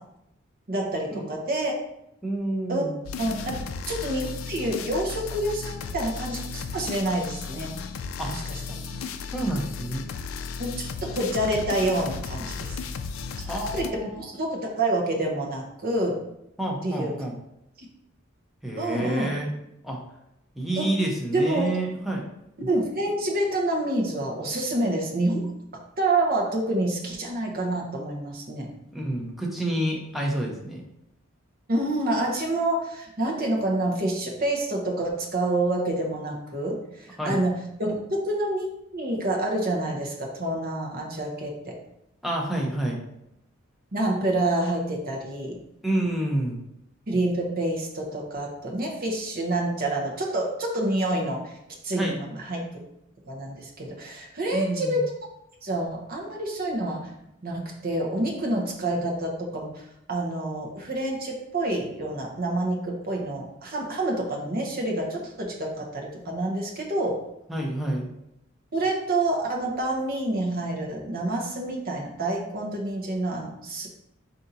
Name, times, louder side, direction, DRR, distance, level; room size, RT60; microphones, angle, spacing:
voice 1, 0.7-1.7 2.7-2.8 3.2-3.5 3.9-7.7 8.3-8.6 10.6-12.7 13.7-16.2 16.8-17.1 18.8-19.3 20.8-20.9 21.3-21.8 22.6-25.5 26.0-28.7 31.7-41.7 43.9-45.6 47.1-51.5 51.8-52.7 53.3-55.0 55.6-57.0 57.4-59.8 60.1-67.2 68.7-73.9, right 1 dB, 45° right, 0 dB, 0.9 m, -27 dB
voice 2, 2.2-2.9 8.2-8.3 8.7-10.1 13.4-14.3 16.6-17.4 18.6-19.5 19.8-20.0 20.6-22.2 28.9-30.8 37.2-37.4 42.2-43.0 45.8-46.6 52.0-52.2 54.5-55.0 67.5-68.1, right 1 dB, ahead, -2 dB, 0.7 m, -29 dB
sound 1, 3.1-13.9, left 5 dB, 75° left, 0.4 m, -35 dB
4.1 x 2.7 x 3.9 m, 0.83 s
head